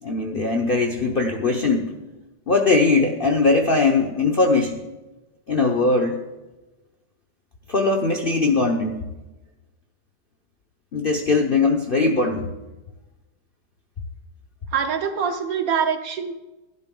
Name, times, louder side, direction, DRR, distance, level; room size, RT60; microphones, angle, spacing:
voice 1, 0.0-1.9 2.5-4.8 5.5-6.2 7.7-9.0 10.9-12.5, left 3 dB, 50° left, 2 dB, 0.6 m, -20 dB
voice 2, 14.7-16.3, right 7 dB, 65° right, 7 dB, 1.0 m, -24 dB
12.0 x 11.5 x 3.7 m, 1.1 s
omnidirectional pair, 1.9 m